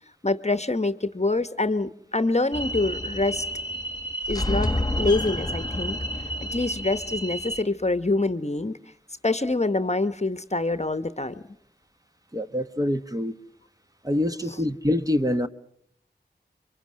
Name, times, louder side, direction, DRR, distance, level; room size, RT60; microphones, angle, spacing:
voice 1, 0.2-3.4 4.3-4.7 5.0-6.0 6.5-8.8 9.2-11.4, left 2 dB, 35° left, 1.0 m, -25 dB
sound 1, 2.5-7.6, equal, 20° left, 1.5 m, -29 dB
voice 2, 12.3-13.4 14.0-15.5, left 1 dB, 20° right, 1.1 m, -25 dB
28.5 x 24.0 x 6.3 m
wide cardioid pair, 60°, 18 cm